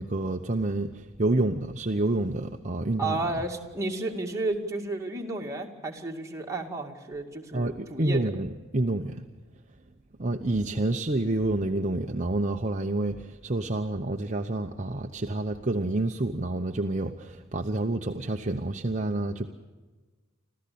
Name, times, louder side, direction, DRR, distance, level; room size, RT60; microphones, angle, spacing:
voice 1, 0.0-3.2 7.5-9.3 10.2-19.5, right 2 dB, 35° right, 4 dB, 0.9 m, -28 dB
voice 2, 3.0-8.2, right 2 dB, 15° right, 0 dB, 2.3 m, -32 dB
26.5 x 15.0 x 8.6 m, 1.3 s
head